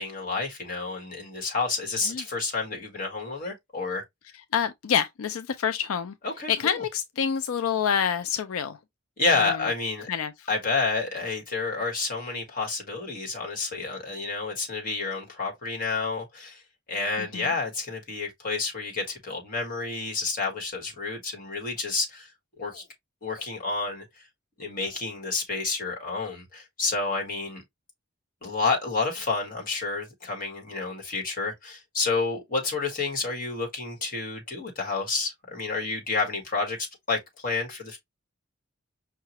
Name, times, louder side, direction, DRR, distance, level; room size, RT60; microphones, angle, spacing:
voice 1, 0.0-4.0 6.2-6.8 9.2-10.1 10.5-16.6 16.9-22.3 22.6-22.8 23.2-24.0 24.6-27.6 28.4-38.0, left 4 dB, 40° left, 1.6 m, -29 dB
voice 2, 4.5-6.1 6.5-8.8 9.3-9.6 10.1-10.3 17.2-17.5, left 8 dB, 85° left, 0.4 m, -27 dB
5.7 x 2.4 x 2.9 m
head